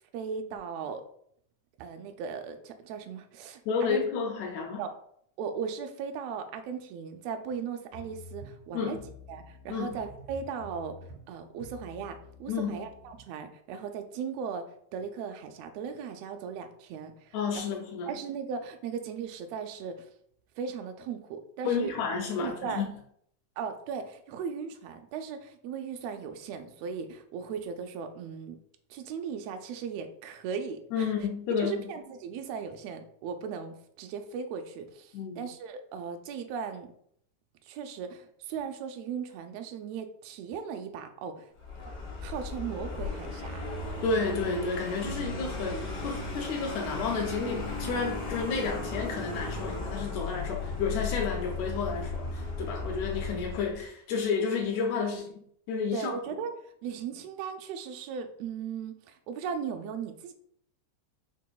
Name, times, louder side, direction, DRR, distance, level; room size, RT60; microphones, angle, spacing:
voice 1, 0.1-1.0 1.8-4.0 4.8-4.9 5.4-9.0 9.3-11.0 11.3-14.6 14.9-17.7 18.1-20.1 20.6-21.9 22.4-22.8 23.6-28.6 28.9-31.1 31.6-36.9 37.7-41.5 42.2-43.6 55.9-60.3, right 6 dB, 80° right, 6 dB, 1.5 m, -37 dB
voice 2, 3.7-4.8 8.7-9.0 9.7-10.0 12.5-12.9 17.3-18.1 21.7-23.0 30.9-31.9 35.1-35.4 44.0-56.2, left 5 dB, 80° left, 2 dB, 1.8 m, -31 dB
sound 1, 7.9-13.2, equal, 50° right, 0.6 m, -49 dB
Vehicle, 41.6-53.8, left 3 dB, 50° left, 1.4 m, -36 dB
6.0 x 2.8 x 2.3 m, 0.67 s
omnidirectional pair, 3.3 m